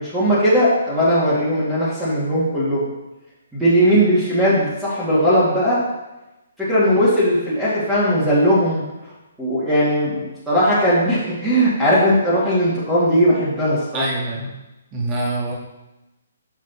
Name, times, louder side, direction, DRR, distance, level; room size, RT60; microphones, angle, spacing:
voice 1, 0.0-2.9 3.5-5.8 6.6-8.8 9.4-14.0, equal, 5° right, -11 dB, 2.1 m, -18 dB
voice 2, 13.9-14.6 14.9-15.5, right 2 dB, 20° right, -3 dB, 1.7 m, -25 dB
6.1 x 6.1 x 4.2 m, 1.0 s
hypercardioid pair, 150°, 0 cm